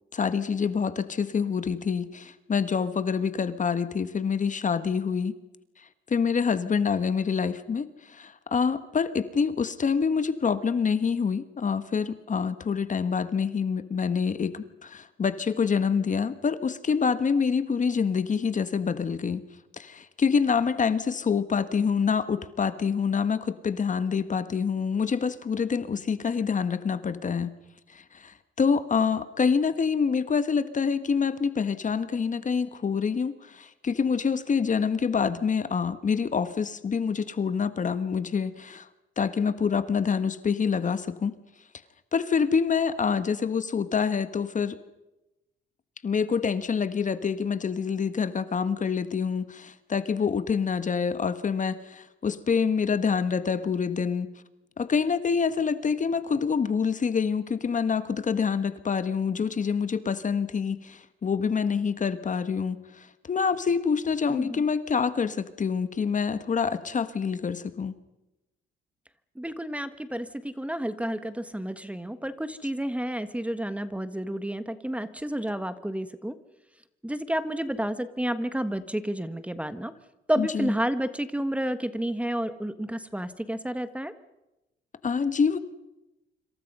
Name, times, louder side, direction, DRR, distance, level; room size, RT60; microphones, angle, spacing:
voice 1, 0.1-5.3 5.8-19.4 19.7-27.5 27.9-38.9 39.2-41.4 42.1-44.8 46.0-54.3 54.8-68.0 80.4-80.7 85.0-85.6, left 6 dB, 40° left, 12 dB, 1.5 m, -26 dB
voice 2, 64.3-64.6 69.3-76.4 77.0-79.9 80.3-84.1, right 1 dB, 5° right, 12 dB, 1.4 m, -30 dB
26.5 x 25.0 x 5.5 m, 0.96 s
cardioid pair, 90°, 20 cm